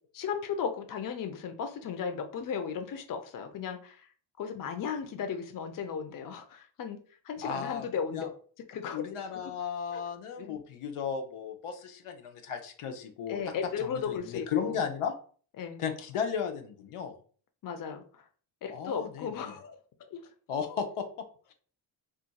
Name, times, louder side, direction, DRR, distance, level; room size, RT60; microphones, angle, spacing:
voice 1, 0.1-4.1 4.4-7.0 7.2-8.3 8.7-9.0 9.3-9.6 9.9-10.0 10.4-10.6 13.3-14.9 15.6-15.8 17.6-18.2 18.6-19.8 20.1-20.2, left 6 dB, 45° left, 6 dB, 0.5 m, -36 dB
voice 2, 7.4-7.9 8.1-8.3 8.9-13.4 14.1-15.1 15.8-17.2 18.7-19.5 20.5-21.3, left 7 dB, 85° left, 5 dB, 0.7 m, -35 dB
2.5 x 2.2 x 3.9 m, 0.43 s
wide cardioid pair, 130°, 50 cm